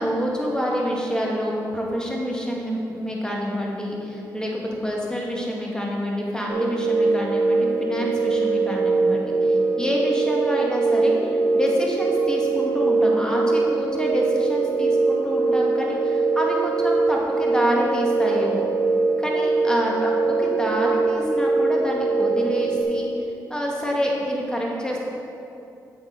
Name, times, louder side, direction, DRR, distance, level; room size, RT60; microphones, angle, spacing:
voice 1, 0.0-18.6 19.2-23.1 23.5-25.0, equal, 10° left, -2 dB, 1.9 m, -27 dB
sound 1, 6.5-22.8, right 3 dB, 55° right, 1.4 m, -22 dB
7.9 x 6.3 x 4.0 m, 2.7 s
supercardioid pair, 45°, 8 cm